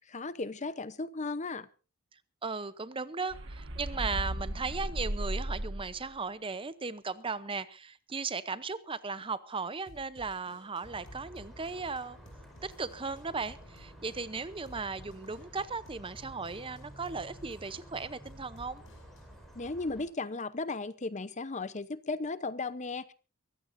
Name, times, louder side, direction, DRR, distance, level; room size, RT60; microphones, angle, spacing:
voice 1, 0.1-1.7 19.6-23.1, left 3 dB, 30° left, 15 dB, 0.8 m, -35 dB
voice 2, 2.4-12.2 12.6-18.8, right 4 dB, 25° right, 15 dB, 0.7 m, -37 dB
sound 1, 3.3-6.1, right 1 dB, 55° right, 1.5 m, -35 dB
Drum kit / Drum, 9.9-19.5, equal, 60° left, 5.9 m, -57 dB
sound 2, 10.8-20.0, equal, ahead, 5.3 m, -52 dB
23.5 x 15.5 x 2.6 m, 0.33 s
head